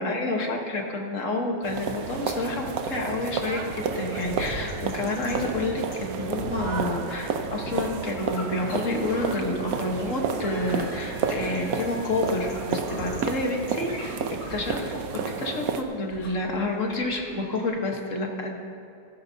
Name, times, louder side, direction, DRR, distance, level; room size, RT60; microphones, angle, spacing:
voice 1, 0.0-14.2 14.5-15.0 15.4-18.6, left 2 dB, 50° left, 1 dB, 1.5 m, -29 dB
sound 1, 1.6-15.8, right 6 dB, 65° right, 1.0 m, -31 dB
sound 2, 4.0-10.1 10.4-17.7, left 1 dB, 70° left, 2.5 m, -41 dB
Trumpet, 10.5-12.5, right 1 dB, 25° left, 2.6 m, -47 dB
15.5 x 13.5 x 2.7 m, 2.6 s
omnidirectional pair, 1.9 m